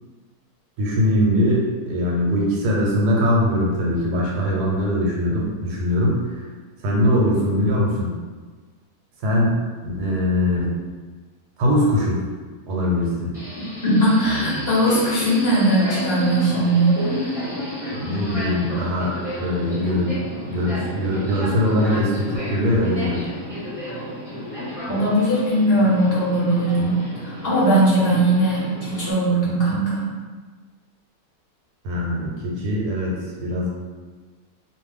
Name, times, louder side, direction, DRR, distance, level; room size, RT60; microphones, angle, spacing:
voice 1, 0.8-6.2 6.8-8.1 9.2-10.7 11.6-12.2 12.7-13.3 14.3-14.4 17.9-20.2 20.4-23.2 31.8-33.7, left 1 dB, 90° right, -3 dB, 1.3 m, -21 dB
Subway metro underground, 13.3-29.1, equal, ahead, 1.0 m, -32 dB
voice 2, 13.8-17.3 24.9-30.1, right 1 dB, 45° left, -8 dB, 0.9 m, -19 dB
2.6 x 2.5 x 3.3 m, 1.4 s
omnidirectional pair, 1.7 m